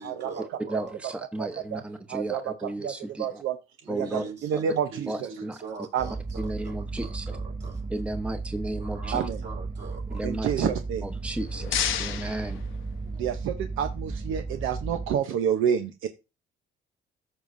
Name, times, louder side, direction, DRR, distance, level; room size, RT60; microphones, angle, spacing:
voice 1, 0.0-1.2 3.8-7.9 8.8-10.2 12.1-12.2 13.0-13.3, right 4 dB, 60° right, 4.0 m, -42 dB
voice 2, 0.7-3.4 3.9-4.2 5.1-5.6 6.4-7.3 7.9-9.2 10.1-10.7 11.0-12.6, right 1 dB, 5° right, 0.9 m, -34 dB
voice 3, 1.4-1.8 2.1-2.4 2.8-2.9 3.2-3.5 3.9-5.1 5.9-6.1 9.1-9.4 10.2-11.0 13.2-15.9, right 8 dB, 90° right, 0.7 m, -28 dB
sound 1, 6.0-15.1, right 3 dB, 25° right, 2.0 m, -35 dB
sound 2, 11.1-13.4, left 10 dB, 80° left, 0.9 m, -33 dB
14.5 x 5.5 x 2.6 m
cardioid pair, 90°, 20 cm